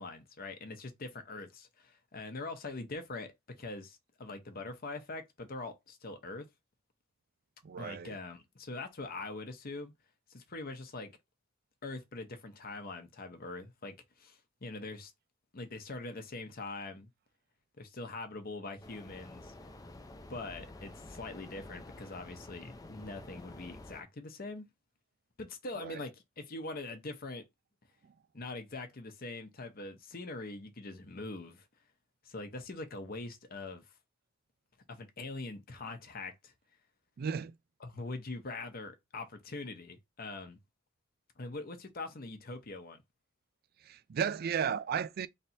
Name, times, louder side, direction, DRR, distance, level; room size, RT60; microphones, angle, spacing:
voice 1, 0.0-6.5 7.8-9.9 10.3-11.1 11.8-15.1 15.5-17.1 17.8-19.5 20.3-24.7 25.4-27.4 28.3-31.7 32.2-33.8 34.9-36.5 37.8-40.6 41.4-43.0, left 3 dB, 50° left, 0.8 m, -43 dB
voice 2, 7.6-8.2 25.8-26.0 37.2-37.5 43.8-45.3, right 7 dB, 50° right, 0.3 m, -34 dB
sound 1, 18.8-24.0, left 2 dB, 20° left, 0.5 m, -50 dB
3.3 x 2.8 x 4.2 m
head